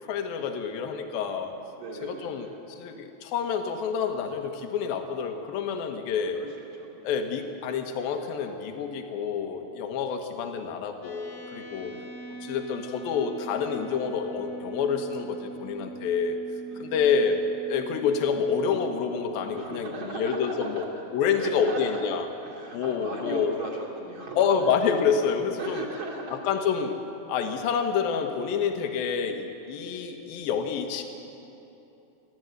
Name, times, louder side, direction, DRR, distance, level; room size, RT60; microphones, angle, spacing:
voice 1, 0.1-1.6 2.0-6.4 7.0-11.9 12.4-16.4 16.8-17.4 17.7-20.8 21.1-22.2 22.7-23.6 24.4-25.8 26.3-26.9 27.3-31.0, left 6 dB, 65° left, 5 dB, 2.8 m, -28 dB
voice 2, 1.7-2.6 6.4-7.1 9.9-10.0 11.7-12.1 16.7-17.0 19.5-22.1 22.4-24.5 25.6-26.6 29.7-30.1, right 2 dB, 30° right, -3 dB, 3.2 m, -38 dB
sound 1, 11.0-19.6, right 4 dB, 90° left, 5.3 m, -42 dB
28.0 x 12.5 x 8.0 m, 2.9 s
omnidirectional pair, 5.1 m